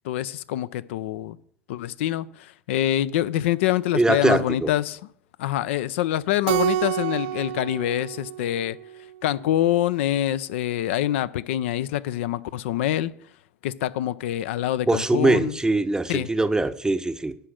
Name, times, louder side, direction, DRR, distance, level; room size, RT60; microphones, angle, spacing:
voice 1, 0.0-1.4 1.7-5.0 5.4-8.8 9.2-13.1 13.6-15.6 16.1-16.3, left 13 dB, 65° left, 0.4 m, -25 dB
voice 2, 3.9-4.7 14.9-17.4, right 2 dB, 10° right, 0.7 m, -22 dB
Keyboard (musical), 6.5-9.1, right 13 dB, 60° right, 0.4 m, -28 dB
9.9 x 5.1 x 6.3 m
figure-of-eight pair, 75°, 7 cm